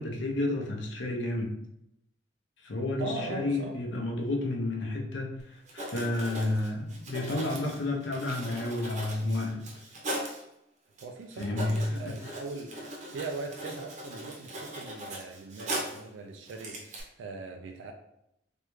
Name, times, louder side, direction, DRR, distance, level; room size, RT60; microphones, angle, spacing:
voice 1, 0.0-1.6 2.6-9.8 11.4-12.0 12.2-12.4, left 2 dB, 65° left, 0 dB, 0.6 m, -31 dB
voice 2, 3.0-3.8 11.0-17.9, right 3 dB, 75° right, 4 dB, 0.3 m, -40 dB
Writing, 5.4-5.5 5.7-10.4 11.0-11.1 11.3-16.1 16.5-17.0, right 1 dB, 40° right, 0.7 m, -39 dB
3.4 x 2.3 x 3.0 m, 0.81 s
head